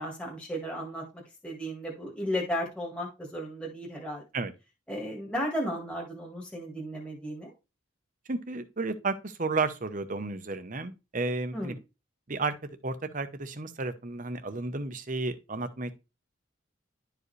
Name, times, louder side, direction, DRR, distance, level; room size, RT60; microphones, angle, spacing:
voice 1, 0.0-4.2 4.9-7.5 11.5-11.8, equal, 5° left, 1.7 m, -34 dB
voice 2, 8.3-11.7 12.3-12.5 12.8-15.9, right 3 dB, 40° right, 0.9 m, -32 dB
11.5 x 4.9 x 3.2 m
head